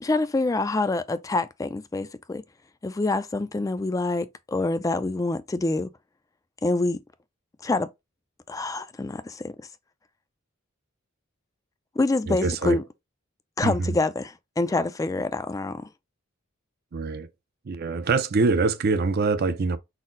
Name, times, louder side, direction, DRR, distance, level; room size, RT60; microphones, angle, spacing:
voice 1, 0.0-2.4 2.8-5.9 6.6-7.0 7.6-7.9 8.5-9.5 12.0-12.8 13.6-15.9, left 2 dB, 15° left, 0.3 m, -26 dB
voice 2, 12.3-12.8 13.6-13.9 16.9-17.3 17.7-19.8, right 4 dB, 50° right, 0.5 m, -24 dB
4.1 x 2.0 x 3.8 m
head